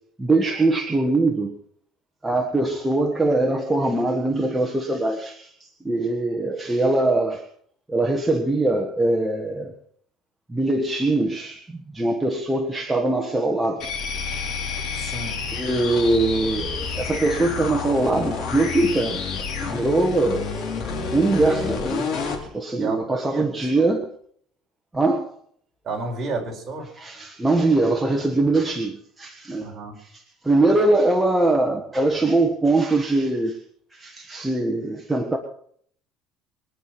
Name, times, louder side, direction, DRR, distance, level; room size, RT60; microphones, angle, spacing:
voice 1, 0.2-1.6 2.2-7.4 7.9-9.7 10.5-13.9 15.5-19.2 19.6-20.5 21.1-22.1 22.4-24.1 24.9-25.3 27.0-29.7 30.0-33.6 33.9-35.4, right 2 dB, 5° right, 1 dB, 1.5 m, -22 dB
sound 1, 13.8-22.4, left 5 dB, 50° left, 4.0 m, -29 dB
voice 2, 14.9-15.4 22.8-23.5 23.7-23.8 25.8-26.9 29.6-30.0, right 3 dB, 30° right, 0 dB, 4.7 m, -31 dB
23.5 x 9.8 x 6.1 m, 0.63 s
cardioid pair, 160°, 0 cm